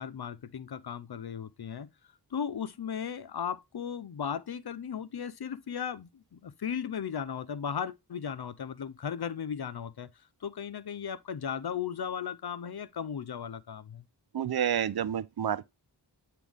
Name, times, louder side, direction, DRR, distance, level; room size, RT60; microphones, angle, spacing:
voice 1, 0.0-1.9 2.3-10.1 10.4-14.0, left 7 dB, 60° left, 0.7 m, -36 dB
voice 2, 14.3-15.6, right 9 dB, 60° right, 0.5 m, -29 dB
8.3 x 3.8 x 3.4 m
wide cardioid pair, 50°, 43 cm